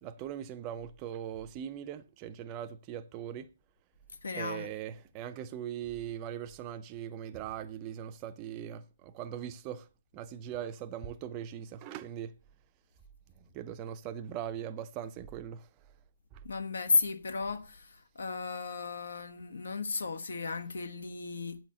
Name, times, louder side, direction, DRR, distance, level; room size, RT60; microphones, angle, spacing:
voice 1, 0.0-3.5 4.3-9.9 10.1-12.3 13.5-15.7, right 10 dB, 15° right, 0.5 m, -40 dB
voice 2, 4.2-4.7 16.4-17.9 18.1-21.6, left 4 dB, 75° left, 1.2 m, -33 dB
9.2 x 6.0 x 6.6 m
hypercardioid pair, 175°, 0 cm